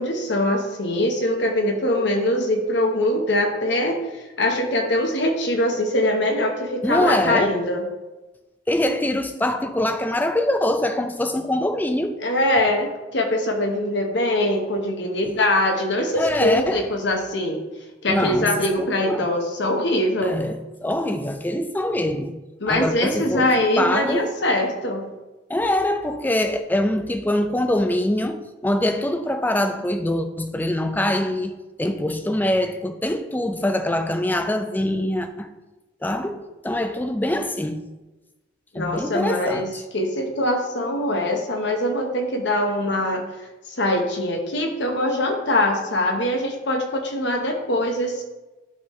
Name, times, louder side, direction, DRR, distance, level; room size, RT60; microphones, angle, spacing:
voice 1, 0.0-4.0 4.4-7.8 12.2-17.6 18.0-20.4 22.6-25.1 38.7-43.3 43.8-48.2, left 1 dB, 60° left, 1.1 m, -22 dB
voice 2, 6.8-7.5 8.7-12.2 15.2-15.3 16.1-16.9 18.1-19.3 20.2-22.4 22.7-23.5 23.8-24.3 25.5-31.5 31.8-35.5 36.0-37.8 38.7-39.8, left 1 dB, 10° left, 0.4 m, -24 dB
11.5 x 4.1 x 3.1 m
head